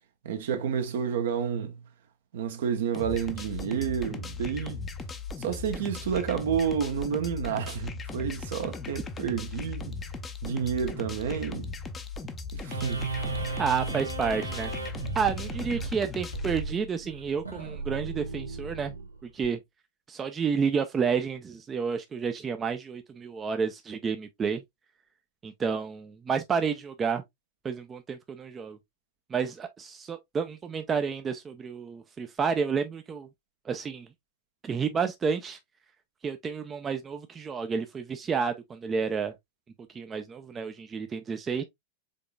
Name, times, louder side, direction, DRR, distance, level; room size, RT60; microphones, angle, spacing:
voice 1, 0.2-1.8 2.3-4.8 5.4-9.9 10.4-11.7 12.5-13.2, right 7 dB, 60° right, 0.9 m, -30 dB
sound 1, 2.9-16.7, left 4 dB, 20° left, 0.7 m, -38 dB
sound 2, 12.7-19.5, right 3 dB, 85° right, 1.2 m, -35 dB
voice 2, 13.6-14.7 15.1-18.9 19.2-19.6 20.1-24.6 25.4-27.2 27.6-28.8 29.3-33.3 33.7-34.1 34.6-35.6 36.2-39.3 39.9-41.6, right 6 dB, 20° right, 0.6 m, -30 dB
5.2 x 3.9 x 2.3 m
figure-of-eight pair, 90°, 0 cm